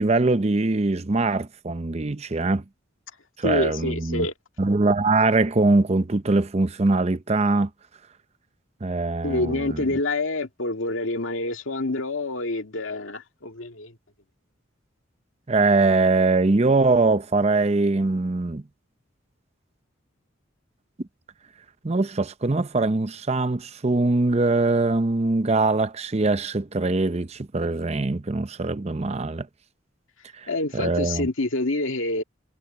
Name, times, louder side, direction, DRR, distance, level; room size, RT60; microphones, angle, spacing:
voice 1, 0.0-2.6 3.4-4.3 4.6-7.7 8.8-9.8 15.5-18.6 21.8-29.5 30.3-31.3, right 3 dB, 30° right, 0.6 m, -22 dB
voice 2, 3.4-4.3 9.2-13.9 30.5-32.2, left 2 dB, 80° left, 2.0 m, -27 dB
head